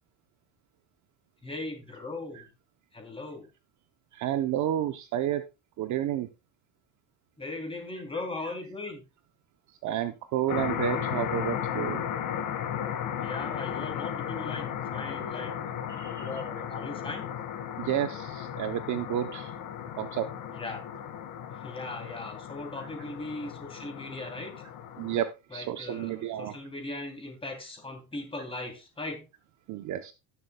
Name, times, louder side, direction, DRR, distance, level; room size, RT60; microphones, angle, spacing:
voice 1, 1.4-2.4 2.9-3.5 7.4-9.0 13.2-15.5 16.0-17.2 20.5-20.8 21.5-24.5 25.5-29.3, left 2 dB, 15° left, 3 dB, 2.8 m, -39 dB
voice 2, 4.1-5.4 5.8-6.3 9.8-12.0 15.9-16.3 17.8-19.5 20.0-20.3 22.8-22.9 25.0-26.5 29.7-30.1, right 11 dB, 45° right, 9 dB, 0.7 m, -31 dB
sound 1, 10.5-25.2, left 9 dB, 45° left, 1.7 m, -35 dB
17.5 x 6.7 x 2.2 m, 0.28 s
cardioid pair, 130°, 42 cm